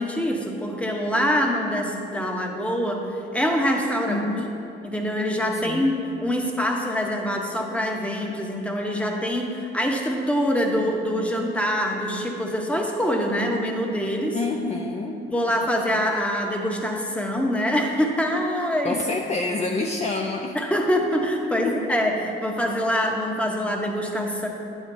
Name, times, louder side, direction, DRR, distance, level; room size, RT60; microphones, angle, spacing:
voice 1, 0.0-4.2 4.8-5.9 6.2-14.4 15.3-19.0 20.5-24.5, equal, 5° left, 1 dB, 0.9 m, -24 dB
voice 2, 4.1-4.5 5.5-5.9 14.3-15.2 18.8-20.5 21.6-21.8, left 3 dB, 35° left, 2 dB, 0.5 m, -27 dB
9.3 x 7.1 x 2.6 m, 2.8 s
cardioid pair, 90°, 20 cm